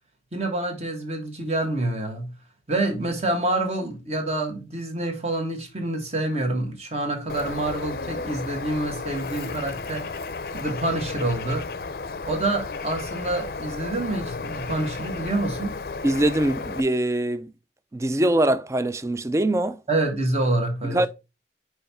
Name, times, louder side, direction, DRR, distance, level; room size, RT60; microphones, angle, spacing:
voice 1, 0.3-2.3 2.7-10.1 10.5-11.7 12.2-15.7 19.9-21.1, right 2 dB, 35° right, 1.6 m, -27 dB
Bird, 7.3-16.8, left 4 dB, 50° left, 0.5 m, -33 dB
voice 2, 16.0-17.5 17.9-19.8 20.8-21.1, right 1 dB, 15° right, 0.3 m, -23 dB
5.5 x 4.7 x 4.2 m
head